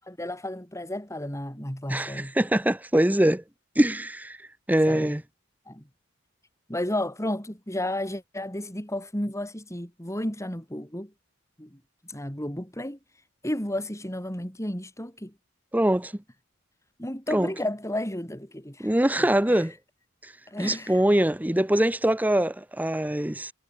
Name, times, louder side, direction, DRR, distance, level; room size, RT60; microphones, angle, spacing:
voice 1, 0.0-2.3 4.9-5.1 5.7-5.8 6.7-11.1 11.6-11.8 12.1-13.0 13.4-15.3 17.0-19.3 20.5-21.0, left 1 dB, 15° left, 7.6 m, -32 dB
voice 2, 1.9-3.4 3.8-4.4 4.7-5.2 15.7-16.1 17.3-17.5 18.8-19.7 20.6-23.5, right 1 dB, 10° right, 0.9 m, -23 dB
head